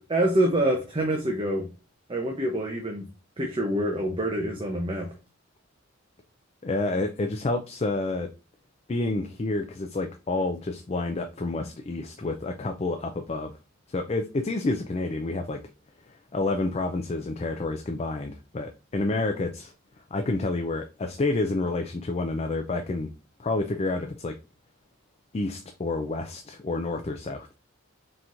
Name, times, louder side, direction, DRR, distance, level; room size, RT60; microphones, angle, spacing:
voice 1, 0.0-1.7 2.1-3.1 3.4-5.1, right 1 dB, 25° right, 0.7 m, -26 dB
voice 2, 6.6-8.3 8.9-13.5 13.9-15.6 16.1-19.7 20.1-23.1 23.4-24.4 25.3-27.5, left 2 dB, 30° left, 0.4 m, -29 dB
4.4 x 3.8 x 2.5 m
head